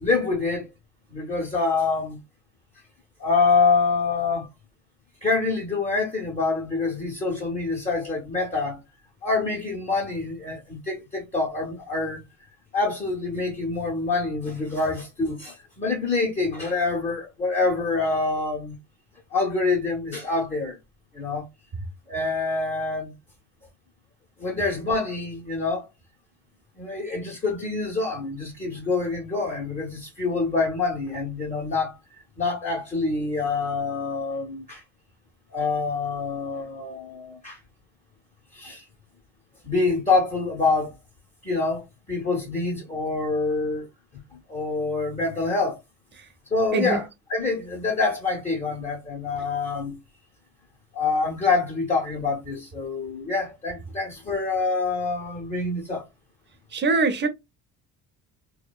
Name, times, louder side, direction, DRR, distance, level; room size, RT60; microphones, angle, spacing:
voice 1, 0.0-0.7 1.1-2.2 3.2-4.5 5.2-8.8 9.2-12.2 12.7-18.8 19.3-20.8 21.1-21.5 22.1-23.1 24.4-25.9 26.8-32.0 32.4-34.8 35.5-37.6 38.5-38.8 39.6-40.9 41.4-43.9 44.5-45.8 46.5-50.0 50.9-56.1, left 3 dB, 20° left, 0.8 m, -26 dB
voice 2, 46.7-47.0 56.7-57.3, right 4 dB, 30° right, 0.7 m, -23 dB
2.7 x 2.2 x 2.2 m
supercardioid pair, 90°, 38 cm